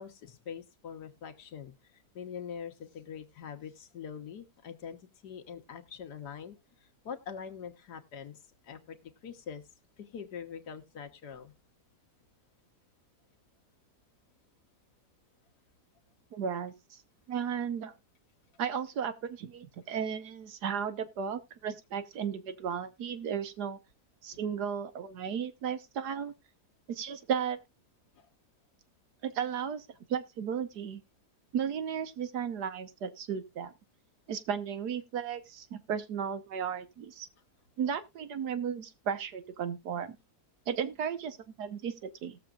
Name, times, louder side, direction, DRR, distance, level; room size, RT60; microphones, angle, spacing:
voice 1, 0.0-5.0 5.2-9.6 10.0-11.5 28.2-28.3, left 7 dB, 90° left, 1.7 m, -44 dB
voice 2, 16.3-17.0 17.3-17.9 18.6-23.8 24.2-26.3 26.9-27.6 29.2-31.0 31.5-33.7 34.3-37.3 37.8-40.2 40.7-42.4, right 7 dB, 90° right, 1.6 m, -35 dB
18.5 x 7.0 x 2.4 m
omnidirectional pair, 1.7 m